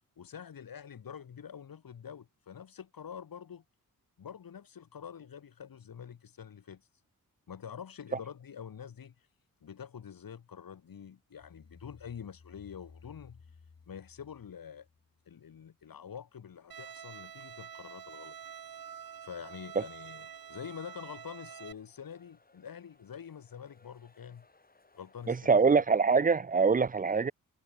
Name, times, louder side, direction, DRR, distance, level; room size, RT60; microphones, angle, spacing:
voice 1, 0.2-3.6 4.2-6.9 7.5-9.3 9.6-13.6 13.9-14.9 15.3-18.4 19.2-24.4 24.9-25.6, left 8 dB, 75° left, 2.4 m, -46 dB
sound 1, 11.4-15.5, left 5 dB, 45° left, 5.9 m, -58 dB
Bowed string instrument, 16.7-21.7, right 8 dB, 90° right, 1.7 m, -47 dB
sound 2, 19.4-25.5, left 3 dB, 25° left, 6.6 m, -67 dB
voice 2, 25.3-27.3, right 5 dB, 25° right, 0.5 m, -24 dB
wide cardioid pair, 170°, 35 cm